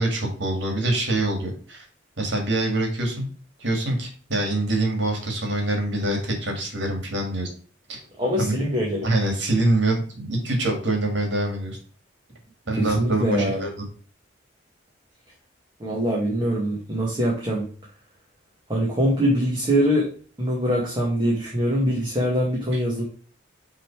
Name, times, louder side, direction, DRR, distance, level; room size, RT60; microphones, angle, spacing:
voice 1, 0.0-1.8 2.2-3.3 3.6-7.5 7.9-8.0 8.4-8.6 9.0-11.8 12.7-13.9, right 2 dB, 65° right, 1 dB, 2.4 m, -25 dB
voice 2, 8.2-9.1 12.8-13.7 15.8-17.7 18.7-20.1 20.4-23.0, equal, 25° right, -4 dB, 1.7 m, -23 dB
6.5 x 3.8 x 4.8 m, 0.43 s
head